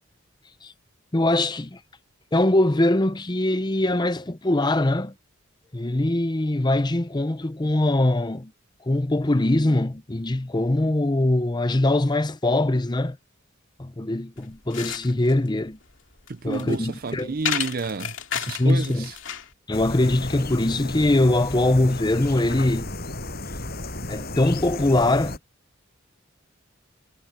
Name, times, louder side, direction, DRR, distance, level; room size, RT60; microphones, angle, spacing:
voice 1, 1.1-1.8 2.3-5.1 5.7-8.5 8.9-13.2 13.8-15.8 16.4-17.3 18.6-19.1 19.7-22.9 24.1-25.4, left 1 dB, 20° left, 0.7 m, -22 dB
sound 1, 14.4-19.5, left 8 dB, 65° left, 2.6 m, -33 dB
voice 2, 16.3-19.1, right 4 dB, 45° right, 0.6 m, -30 dB
sound 2, 19.7-25.4, left 2 dB, 50° left, 7.4 m, -33 dB
head